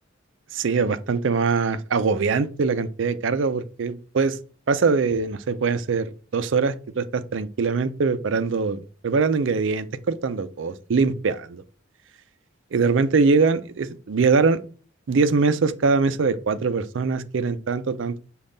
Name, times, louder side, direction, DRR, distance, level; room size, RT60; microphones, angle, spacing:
voice 1, 0.5-4.4 4.7-11.6 12.7-14.6 15.1-18.2, right 4 dB, 70° right, 0.4 m, -22 dB
5.3 x 2.4 x 3.9 m
head